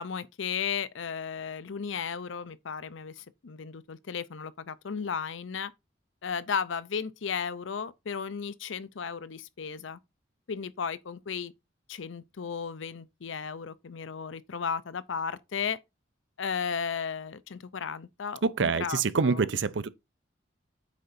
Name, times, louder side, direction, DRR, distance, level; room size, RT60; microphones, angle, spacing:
voice 1, 0.0-5.7 6.2-10.0 10.5-11.5 11.9-15.8 16.4-19.4, left 6 dB, 75° left, 0.6 m, -35 dB
voice 2, 18.4-19.9, right 4 dB, 70° right, 0.6 m, -26 dB
8.4 x 6.6 x 2.6 m
head